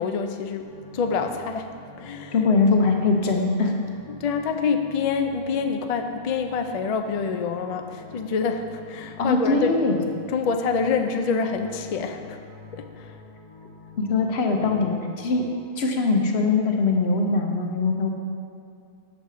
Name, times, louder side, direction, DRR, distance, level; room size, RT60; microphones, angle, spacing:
voice 1, 0.0-1.7 2.0-2.4 4.1-9.7 10.3-12.4 12.7-13.2, left 5 dB, 50° left, 6 dB, 0.5 m, -26 dB
sound 1, 0.6-15.6, left 2 dB, 35° right, 1.7 m, -46 dB
voice 2, 2.3-3.7 9.2-10.0 14.0-15.4 15.8-18.1, left 3 dB, 80° left, 2 dB, 1.1 m, -22 dB
6.7 x 4.8 x 6.7 m, 2.4 s
omnidirectional pair, 1.1 m